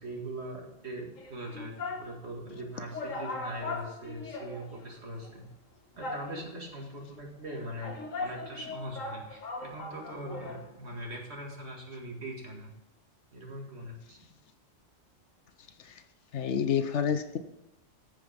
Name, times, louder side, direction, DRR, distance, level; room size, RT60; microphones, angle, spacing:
voice 1, 0.0-5.5 6.0-12.7 13.3-14.2, right 1 dB, 55° right, 0 dB, 2.3 m, -41 dB
sound 1, 1.2-2.1 2.6-2.7 2.9-5.0 5.2-5.3 6.0-6.7 7.5-10.7 10.9-11.0, left 3 dB, 85° left, 1.7 m, -39 dB
voice 2, 16.3-17.4, left 7 dB, 65° left, 9 dB, 1.0 m, -29 dB
14.0 x 5.1 x 5.1 m, 0.89 s
omnidirectional pair, 1.3 m